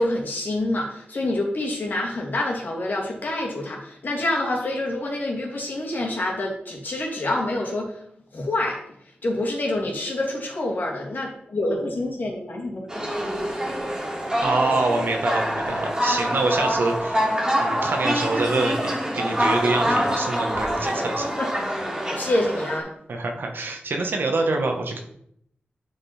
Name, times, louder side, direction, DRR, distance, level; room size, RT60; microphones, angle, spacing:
voice 1, 0.0-8.0 8.3-8.8 9.2-12.9 21.4-21.5 22.1-22.9, left 1 dB, 60° left, -1 dB, 2.3 m, -27 dB
sound 1, 12.9-22.8, equal, 20° right, 2.3 m, -25 dB
voice 2, 14.4-17.3 17.6-21.3 23.1-25.0, right 3 dB, 75° right, 3 dB, 1.4 m, -25 dB
9.2 x 5.3 x 4.4 m, 0.71 s
wide cardioid pair, 100°, 4 cm